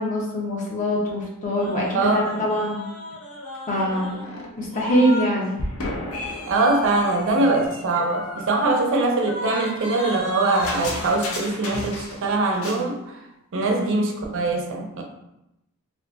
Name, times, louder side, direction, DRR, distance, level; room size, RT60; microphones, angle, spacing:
voice 1, 0.0-2.9 3.7-4.1 4.6-5.6, equal, 35° left, -3 dB, 0.6 m, -23 dB
sound 1, 1.6-5.3 5.6-12.3 12.5-12.8, left 1 dB, 75° left, 0.5 m, -33 dB
voice 2, 1.9-2.3 6.5-13.1 13.5-15.0, right 2 dB, 65° right, 2 dB, 0.4 m, -22 dB
2.6 x 2.4 x 2.3 m, 0.88 s
head